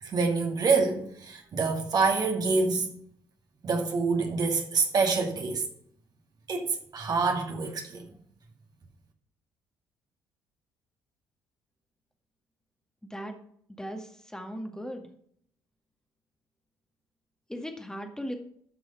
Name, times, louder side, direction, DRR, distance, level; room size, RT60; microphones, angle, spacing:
voice 1, 0.0-3.0 3.6-5.6 6.5-8.1, right 4 dB, 45° right, 2.4 m, -26 dB
voice 2, 13.8-15.1 17.5-18.3, equal, 5° left, 2.0 m, -37 dB
12.5 x 6.2 x 5.7 m
figure-of-eight pair, 50°, 9 cm